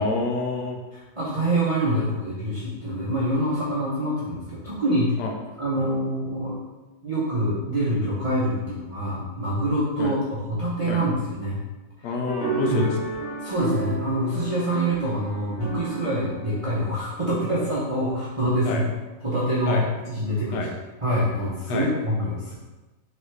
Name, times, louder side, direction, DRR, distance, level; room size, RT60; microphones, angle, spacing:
voice 1, 0.0-0.8 5.2-5.3 5.8-6.0 10.0-10.1 10.9-11.0 12.0-13.2 18.6-18.8 19.7-19.9 20.5-20.7 21.7-21.9, left 3 dB, 80° left, 3 dB, 1.2 m, -28 dB
voice 2, 0.9-5.2 5.6-6.6 7.0-11.6 12.6-12.9 13.4-18.8 19.2-20.7 21.0-22.5, right 1 dB, 45° right, -8 dB, 0.4 m, -25 dB
sound 1, 12.3-17.8, right 3 dB, 30° left, 1.5 m, -32 dB
3.9 x 3.3 x 3.2 m, 1.2 s
omnidirectional pair, 1.9 m